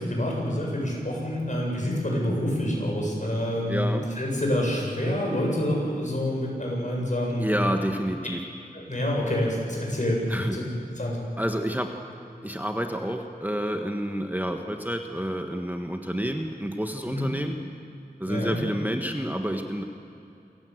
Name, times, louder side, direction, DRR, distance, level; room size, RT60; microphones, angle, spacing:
voice 1, 0.0-7.5 8.7-10.6 11.0-11.2 17.0-17.3 18.3-18.6, left 1 dB, 50° left, -2 dB, 8.0 m, -27 dB
voice 2, 3.7-4.1 7.4-8.4 10.3-10.6 11.4-11.9 12.4-17.6 18.2-19.8, equal, 10° right, 4 dB, 1.4 m, -29 dB
28.0 x 16.0 x 8.0 m, 2.7 s
wide cardioid pair, 50°, 16 cm